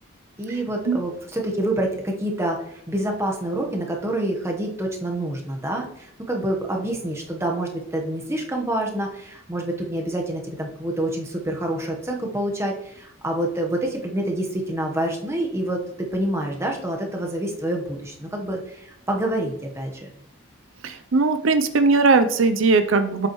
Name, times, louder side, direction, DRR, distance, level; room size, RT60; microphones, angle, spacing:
voice 1, 0.4-15.8 16.1-20.1, right 1 dB, 15° right, 1 dB, 1.1 m, -27 dB
voice 2, 20.8-23.3, right 3 dB, 70° right, 9 dB, 0.5 m, -19 dB
7.7 x 7.5 x 3.1 m, 0.80 s
head